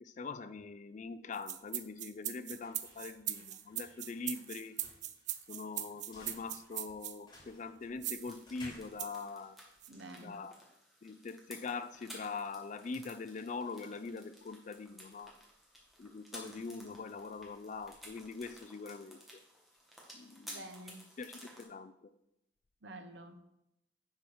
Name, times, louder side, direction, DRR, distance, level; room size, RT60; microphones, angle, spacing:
voice 1, 0.0-4.8 5.5-9.6 10.2-10.5 11.0-15.3 16.0-19.2 20.1-20.6 21.2-21.9, left 4 dB, 40° left, 13 dB, 0.4 m, -43 dB
sound 1, 1.1-10.1, left 2 dB, 25° left, 3.5 m, -59 dB
sound 2, 1.3-7.2 8.0-8.3 9.0-9.2 9.8-9.9, right 12 dB, 40° right, 0.4 m, -40 dB
sound 3, 8.2-21.6, equal, ahead, 1.7 m, -55 dB
voice 2, 9.9-10.4 16.4-16.5 20.5-21.0 22.8-23.4, right 1 dB, 70° right, 7 dB, 0.9 m, -49 dB
10.0 x 4.6 x 4.9 m, 0.85 s
head